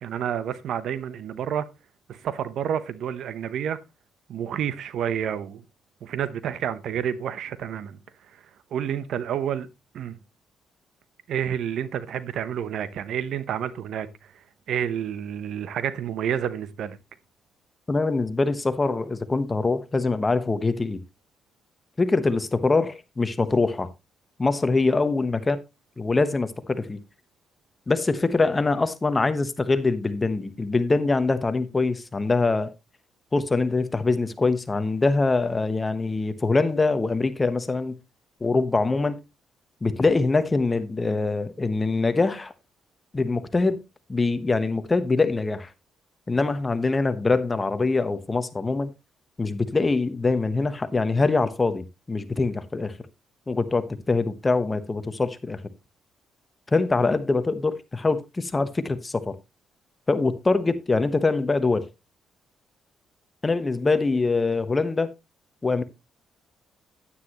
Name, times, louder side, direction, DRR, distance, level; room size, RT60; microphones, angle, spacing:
voice 1, 0.0-1.7 2.1-3.8 4.3-5.6 6.0-8.0 8.7-9.7 9.9-10.1 11.3-14.1 14.3-17.0, right 9 dB, 70° right, 0.8 m, -29 dB
voice 2, 17.9-21.0 22.0-23.9 24.4-25.6 26.0-27.0 27.9-32.7 33.3-38.0 38.4-39.2 39.8-42.5 43.1-43.8 44.1-45.7 46.3-48.9 49.4-52.9 53.5-55.6 56.7-59.4 60.1-61.9 63.4-65.1 65.6-65.8, left 3 dB, 25° left, 1.1 m, -23 dB
9.7 x 9.3 x 3.0 m
cardioid pair, 90°, 0 cm